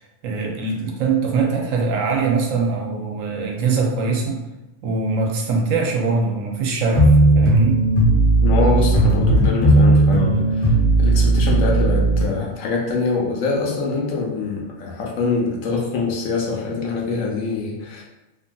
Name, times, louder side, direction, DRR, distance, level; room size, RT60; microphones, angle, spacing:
voice 1, 0.2-4.4 4.8-7.8, right 4 dB, 80° right, 0 dB, 1.0 m, -22 dB
sound 1, 6.9-12.3, right 2 dB, 45° left, 0.9 m, -15 dB
voice 2, 8.4-18.0, left 4 dB, 80° left, -2 dB, 1.0 m, -24 dB
2.8 x 2.6 x 2.3 m, 1.0 s
omnidirectional pair, 1.4 m